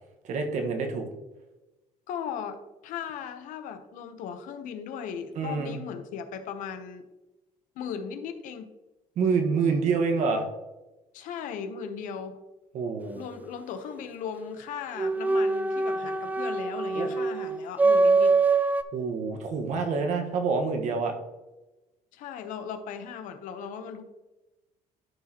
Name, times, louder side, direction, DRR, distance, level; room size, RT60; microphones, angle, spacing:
voice 1, 0.2-1.1 5.3-5.8 9.2-10.4 12.7-13.3 16.9-17.1 18.9-21.1, right 5 dB, 65° right, 4 dB, 1.4 m, -27 dB
voice 2, 2.1-7.1 7.8-8.7 11.1-12.4 13.1-18.4 22.1-24.0, left 7 dB, 75° left, 8 dB, 0.9 m, -37 dB
sound 1, 15.0-18.8, right 3 dB, 10° right, 0.3 m, -24 dB
12.5 x 4.9 x 2.9 m, 1.0 s
cardioid pair, 125°, 14 cm